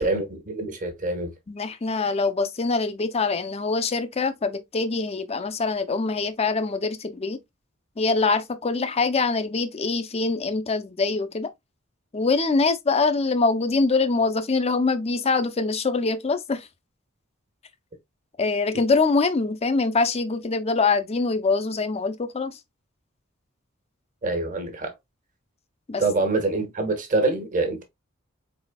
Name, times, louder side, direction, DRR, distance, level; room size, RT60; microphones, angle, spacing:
voice 1, 0.0-1.3 24.2-24.9 26.0-27.8, right 2 dB, 40° right, 1.2 m, -25 dB
voice 2, 1.5-7.4 8.0-11.5 12.1-16.7 18.4-22.6 25.9-26.0, left 3 dB, 30° left, 0.5 m, -24 dB
4.4 x 4.1 x 2.2 m
head